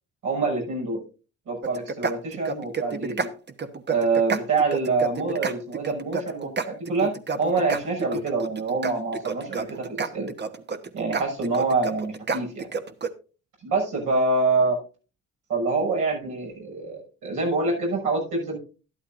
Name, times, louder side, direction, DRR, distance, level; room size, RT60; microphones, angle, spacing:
voice 1, 0.2-1.0 1.5-3.3 3.9-7.1 7.4-10.3 10.9-12.7 13.6-14.8 15.5-18.6, right 3 dB, 80° right, -2 dB, 6.1 m, -26 dB
sound 1, 1.6-13.1, right 5 dB, 35° right, 1.1 m, -30 dB
12.0 x 11.5 x 2.6 m, 0.34 s
cardioid pair, 90°, 30 cm